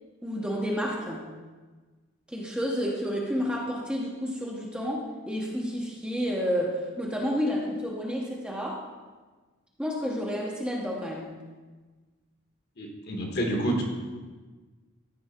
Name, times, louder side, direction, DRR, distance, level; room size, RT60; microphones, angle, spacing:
voice 1, 0.2-1.3 2.3-8.9 9.8-11.4, equal, 5° right, -2 dB, 0.8 m, -30 dB
voice 2, 12.8-13.8, right 1 dB, 50° left, 1 dB, 1.4 m, -28 dB
13.5 x 4.7 x 4.3 m, 1.4 s
head